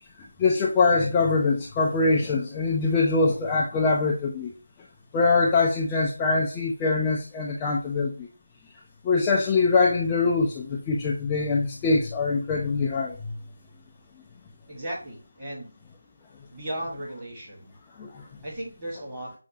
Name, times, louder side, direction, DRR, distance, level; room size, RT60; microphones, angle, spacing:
voice 1, 0.4-4.6 5.1-8.3 9.0-13.3 18.0-18.2, left 3 dB, 15° left, -3 dB, 0.3 m, -23 dB
voice 2, 14.7-15.7 16.5-17.8 18.4-19.3, right 1 dB, 15° right, -8 dB, 1.4 m, -36 dB
6.4 x 2.4 x 2.7 m, 0.37 s
figure-of-eight pair, 165°, 0 cm